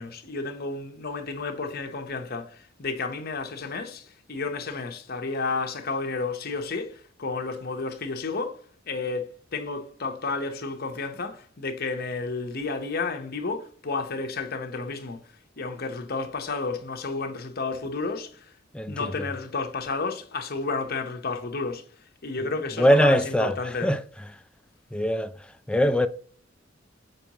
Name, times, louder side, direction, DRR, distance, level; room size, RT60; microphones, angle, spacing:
voice 1, 0.0-8.6 8.9-9.2 9.5-15.2 15.6-18.4 18.9-21.8 22.2-23.9, left 3 dB, 55° left, 0.9 m, -31 dB
voice 2, 18.7-19.3 22.4-24.0 24.9-25.3 25.7-26.1, equal, 5° left, 0.4 m, -22 dB
6.7 x 4.7 x 3.0 m
head